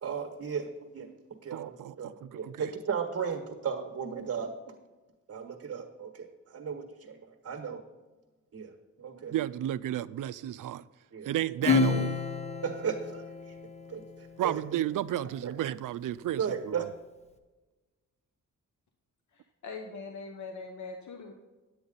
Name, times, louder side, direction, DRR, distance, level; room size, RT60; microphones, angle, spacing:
voice 1, 0.0-1.1 1.4-4.5 5.3-7.2 7.4-7.8 8.5-8.7 9.0-9.3 11.1-11.3 12.6-13.5 13.9-14.0 14.4-14.8 15.4-15.5 16.4-16.9, right 6 dB, 50° right, 1.4 m, -35 dB
voice 2, 1.5-2.7 9.3-10.8 11.2-12.2 14.4-16.9, right 12 dB, 85° right, 0.5 m, -33 dB
Acoustic guitar / Strum, 11.6-14.5, left 4 dB, 20° left, 0.9 m, -30 dB
voice 3, 19.3-21.3, left 4 dB, 65° left, 1.1 m, -42 dB
10.0 x 8.8 x 4.0 m
wide cardioid pair, 110°, 31 cm